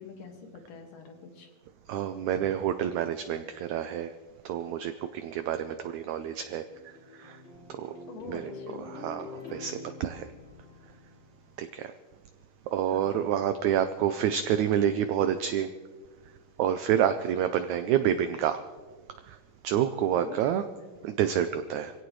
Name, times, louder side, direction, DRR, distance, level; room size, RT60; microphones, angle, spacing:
voice 1, 0.0-1.5 8.1-9.1 12.9-13.3 20.2-20.9, left 4 dB, 70° left, 3 dB, 3.5 m, -45 dB
voice 2, 1.9-4.1 4.4-6.6 7.2-7.4 8.3-8.5 8.9-10.3 11.6-11.9 12.7-15.7 16.6-18.6 19.6-20.6 21.0-21.9, right 10 dB, 85° right, 9 dB, 1.6 m, -28 dB
sound 1, 6.2-11.6, left 3 dB, 20° left, 3.0 m, -46 dB
24.5 x 17.0 x 3.2 m, 1.4 s
omnidirectional pair, 4.0 m